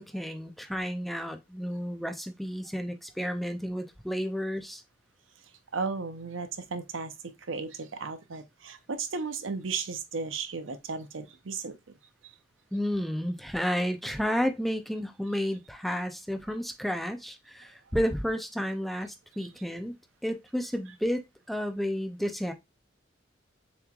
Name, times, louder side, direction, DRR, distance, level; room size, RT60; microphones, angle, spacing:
voice 1, 0.0-4.8 12.7-19.9 20.2-21.2 21.5-22.5, equal, ahead, 0.5 m, -31 dB
voice 2, 5.7-7.1 7.5-11.8, right 4 dB, 90° right, 0.7 m, -35 dB
7.0 x 3.1 x 2.4 m
head